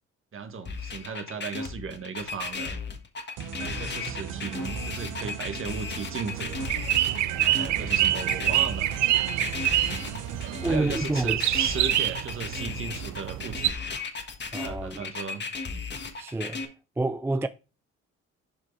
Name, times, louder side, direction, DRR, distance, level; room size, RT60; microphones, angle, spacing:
voice 1, 0.3-2.8 3.6-6.6 7.4-8.9 10.4-13.7 14.5-15.4, right 5 dB, 45° right, 1.5 m, -36 dB
sound 1, 0.7-16.7, left 4 dB, 35° left, 1.5 m, -35 dB
sound 2, 3.4-10.8, right 8 dB, 90° right, 1.1 m, -37 dB
sound 3, 6.3-13.7, right 14 dB, 70° right, 0.5 m, -27 dB
voice 2, 10.6-11.4 14.5-15.1 16.2-16.6 17.0-17.5, right 2 dB, 10° right, 0.3 m, -28 dB
7.4 x 5.0 x 4.6 m
cardioid pair, 90°, 30 cm